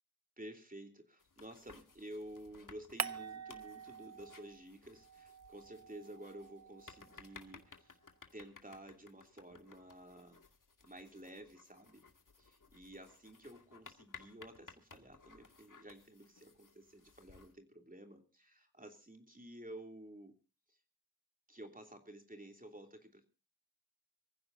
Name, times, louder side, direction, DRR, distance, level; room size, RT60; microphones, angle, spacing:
voice 1, 0.4-8.0 8.3-10.4 10.8-12.0 12.4-20.4 20.7-20.8 21.5-23.2, right 1 dB, 20° right, 5 dB, 3.0 m, -52 dB
sound 1, 1.2-17.5, left 4 dB, 50° left, 2.3 m, -60 dB
sound 2, 3.0-4.7 5.0-7.4, right 6 dB, 40° right, 0.8 m, -46 dB
25.0 x 15.5 x 2.7 m, 0.32 s
wide cardioid pair, 65°, 41 cm